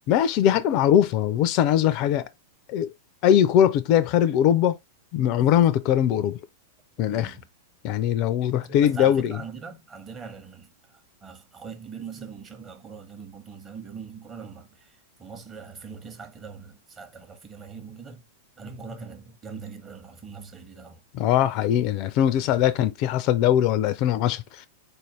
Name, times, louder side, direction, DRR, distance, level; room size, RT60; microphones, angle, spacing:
voice 1, 0.1-2.3 2.7-2.9 3.2-4.8 5.1-6.4 7.0-7.3 7.8-9.4 21.1-24.7, left 10 dB, 45° left, 0.3 m, -21 dB
voice 2, 7.0-7.5 8.6-10.7 11.2-14.9 15.2-18.2 18.6-21.0, right 5 dB, 25° right, 0.9 m, -41 dB
4.2 x 2.6 x 3.0 m
figure-of-eight pair, 95°, 0 cm